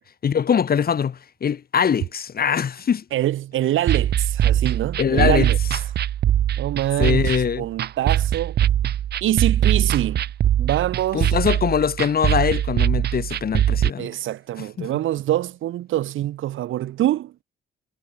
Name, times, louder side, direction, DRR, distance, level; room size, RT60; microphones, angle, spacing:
voice 1, 0.2-3.0 5.0-5.5 7.0-7.7 11.1-14.1 14.8-14.9, left 7 dB, 50° left, 3.9 m, -22 dB
voice 2, 3.1-5.6 6.6-8.6 9.2-10.2 10.6-11.4 14.0-17.3, right 13 dB, 80° right, 5.7 m, -25 dB
sound 1, 3.9-13.9, right 11 dB, 55° right, 0.6 m, -22 dB
cardioid pair, 90°, 20 cm